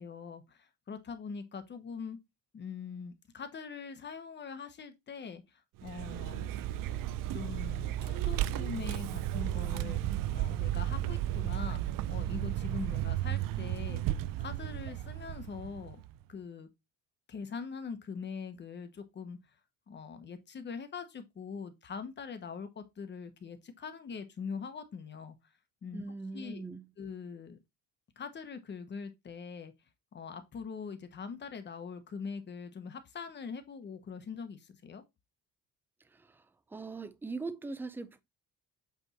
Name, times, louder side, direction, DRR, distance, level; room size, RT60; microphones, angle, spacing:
voice 1, 0.0-2.2 2.5-6.5 7.3-10.0 10.3-11.8 12.1-14.0 14.4-16.0 16.3-16.7 17.3-19.4 19.9-25.4 25.8-26.0 26.3-26.7 27.0-27.6 28.2-29.7 30.1-35.0, left 5 dB, 30° left, 1.0 m, -42 dB
Vehicle, 5.8-16.1, right 13 dB, 70° right, 0.5 m, -34 dB
voice 2, 25.9-26.9 36.7-38.2, right 3 dB, 5° right, 0.4 m, -40 dB
8.3 x 3.5 x 4.2 m
cardioid pair, 165°, 35 cm